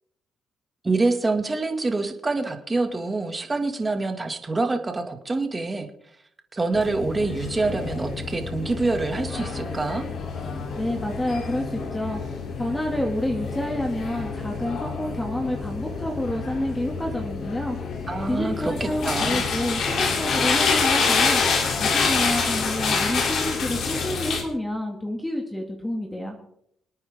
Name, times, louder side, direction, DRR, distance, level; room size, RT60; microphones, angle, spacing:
voice 1, 0.8-5.9 6.5-10.0 18.1-19.4, right 3 dB, 25° right, 5 dB, 2.2 m, -26 dB
sound 1, 6.7-24.4, left 5 dB, 65° left, 3.3 m, -27 dB
voice 2, 10.8-12.2 12.6-17.8 18.3-21.4 21.7-26.4, left 1 dB, 10° left, 1 dB, 2.3 m, -29 dB
27.0 x 9.1 x 3.7 m, 0.72 s
cardioid pair, 90°, 0 cm